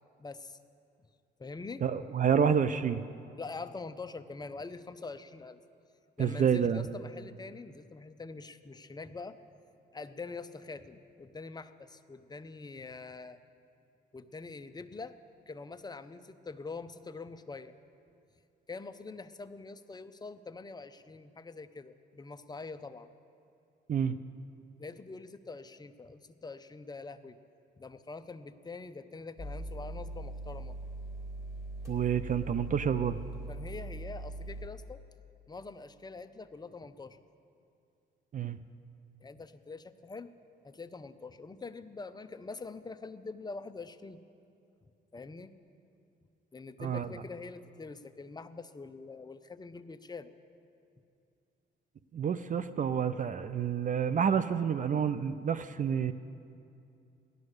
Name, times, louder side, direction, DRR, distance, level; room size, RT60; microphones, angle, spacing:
voice 1, 0.2-0.6 1.4-1.8 3.4-5.6 6.2-9.4 9.9-13.4 14.1-15.2 15.5-17.7 18.7-23.1 24.8-27.4 27.8-30.8 33.5-35.0 35.5-37.2 39.2-40.3 40.6-44.2 45.1-45.5 46.5-50.3, left 3 dB, 20° left, 10 dB, 0.7 m, -44 dB
voice 2, 1.8-3.0 6.2-6.8 23.9-24.1 31.9-33.2 38.3-38.6 46.8-47.1 52.1-56.1, right 7 dB, 40° right, 12 dB, 0.5 m, -28 dB
sound 1, 29.4-34.7, right 2 dB, 15° right, 3.2 m, -41 dB
15.5 x 11.0 x 6.5 m, 2.6 s
cardioid pair, 90°, 20 cm